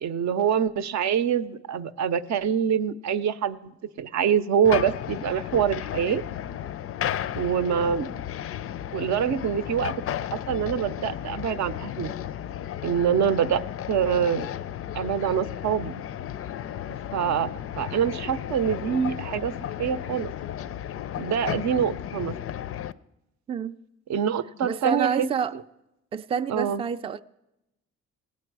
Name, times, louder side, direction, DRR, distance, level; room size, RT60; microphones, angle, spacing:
voice 1, 0.0-3.7 4.0-6.2 7.3-8.2 8.9-9.9 10.3-12.1 12.8-13.6 13.9-14.5 14.9-16.0 17.1-17.5 17.8-19.5 19.8-20.3 21.2-22.4 24.1-25.3 25.5-25.6 26.5-26.8, right 8 dB, 65° right, 0.6 m, -25 dB
sound 1, 4.6-22.9, left 10 dB, 50° left, 0.4 m, -34 dB
voice 2, 24.6-25.5 26.1-27.2, right 7 dB, 20° right, 0.3 m, -28 dB
18.5 x 8.5 x 4.7 m
cardioid pair, 90°, 30 cm